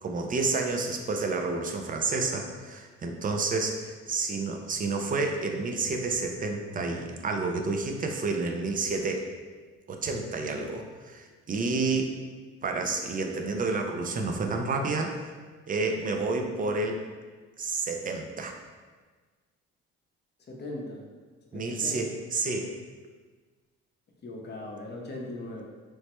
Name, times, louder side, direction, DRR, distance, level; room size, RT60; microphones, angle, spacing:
voice 1, 0.0-9.3 9.9-12.1 12.6-15.3 15.7-17.0 17.6-18.5 21.5-22.8, right 3 dB, 30° right, 3 dB, 0.3 m, -30 dB
voice 2, 20.5-21.1 21.5-22.1 24.2-25.6, left 2 dB, 35° left, -1 dB, 0.6 m, -39 dB
3.1 x 2.1 x 2.9 m, 1.4 s
cardioid pair, 90°, 30 cm